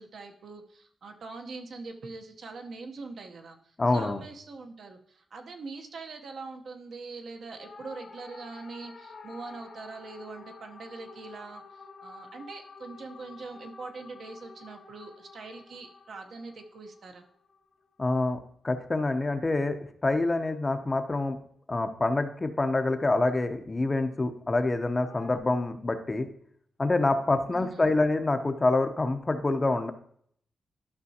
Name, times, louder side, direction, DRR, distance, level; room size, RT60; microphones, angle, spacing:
voice 1, 0.0-17.3 27.5-27.9, right 3 dB, 60° right, 4 dB, 0.9 m, -43 dB
voice 2, 3.8-4.2 18.0-18.4 18.6-19.8 20.0-21.4 21.7-26.3 26.8-29.9, left 2 dB, 25° left, 8 dB, 0.6 m, -26 dB
sound 1, 7.5-18.0 25.0-25.4, left 4 dB, 55° left, 0.9 m, -50 dB
12.0 x 5.5 x 2.8 m, 0.64 s
wide cardioid pair, 115°, 0 cm